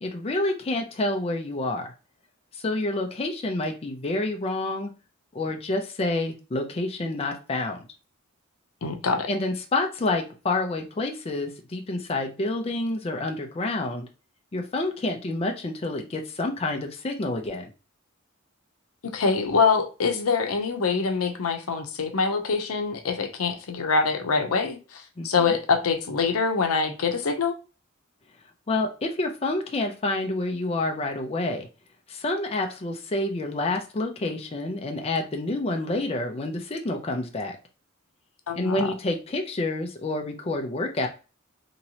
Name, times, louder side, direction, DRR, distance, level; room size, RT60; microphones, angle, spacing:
voice 1, 0.0-1.9 2.5-4.9 5.3-7.8 9.3-14.1 14.5-17.7 25.2-25.6 28.7-31.7 32.1-37.6 38.5-41.1, left 2 dB, 30° left, 0.4 m, -28 dB
voice 2, 8.8-9.3 19.1-27.5 38.5-38.9, left 5 dB, 90° left, 0.6 m, -25 dB
3.0 x 2.8 x 2.8 m
head